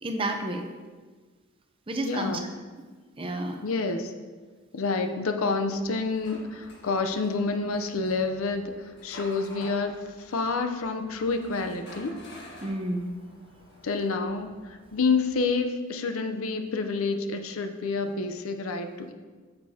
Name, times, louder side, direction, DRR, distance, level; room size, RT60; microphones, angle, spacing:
voice 1, 0.0-0.6 1.9-2.4 3.2-3.6 12.6-13.1, right 1 dB, 25° right, 4 dB, 0.7 m, -30 dB
voice 2, 2.0-2.4 3.6-4.1 4.7-12.1 12.5-12.6 13.8-19.1, left 4 dB, 80° left, 6 dB, 0.6 m, -28 dB
sound 1, 5.6-15.4, equal, 55° left, 1.5 m, -50 dB
9.1 x 6.7 x 2.8 m, 1.4 s
head